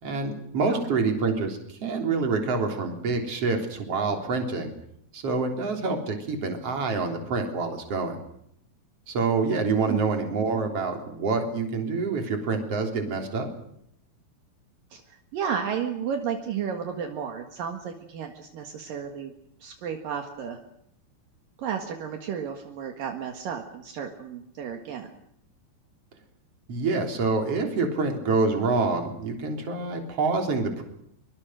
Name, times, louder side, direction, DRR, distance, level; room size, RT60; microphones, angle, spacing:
voice 1, 0.0-4.7 5.1-8.2 9.1-13.5 26.7-30.8, right 4 dB, 40° right, 3 dB, 4.4 m, -27 dB
voice 2, 14.9-19.3 19.6-20.6 21.6-25.1, right 7 dB, 70° right, 4 dB, 3.4 m, -33 dB
24.5 x 24.0 x 6.4 m, 0.73 s
omnidirectional pair, 4.3 m